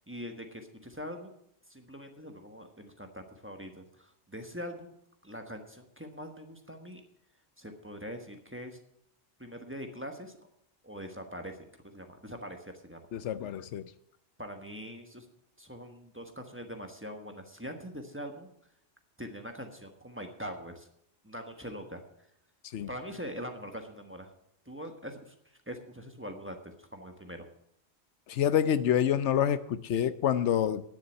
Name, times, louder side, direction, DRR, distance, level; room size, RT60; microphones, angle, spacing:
voice 1, 0.0-1.3 1.7-4.9 5.2-7.0 7.6-8.8 9.4-10.4 10.8-11.6 11.8-13.0 14.4-15.3 15.6-18.5 19.2-20.9 21.2-22.0 22.9-24.3 24.7-25.3 25.7-27.5, equal, 10° right, 4 dB, 1.2 m, -43 dB
voice 2, 13.1-13.9 22.7-22.9 28.3-30.8, left 9 dB, 90° left, 14 dB, 1.0 m, -27 dB
10.0 x 6.9 x 9.0 m, 0.75 s
omnidirectional pair, 1.1 m